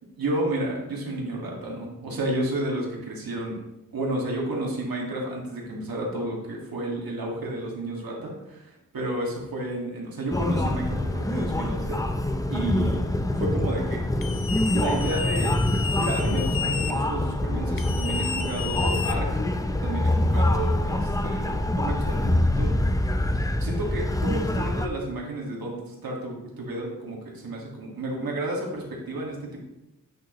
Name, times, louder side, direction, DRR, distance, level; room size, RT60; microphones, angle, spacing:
voice 1, 0.2-3.6 3.9-12.0 12.5-13.0 13.4-14.0 14.7-15.5 15.9-19.4 19.8-22.7 23.6-29.6, right 1 dB, 80° right, -2 dB, 1.9 m, -31 dB
sound 1, 10.3-24.9, left 1 dB, 10° left, 0.4 m, -25 dB
sound 2, 14.2-16.9 17.8-19.6, left 6 dB, 70° left, 0.7 m, -32 dB
9.0 x 6.4 x 3.0 m, 0.95 s
wide cardioid pair, 150°, 35 cm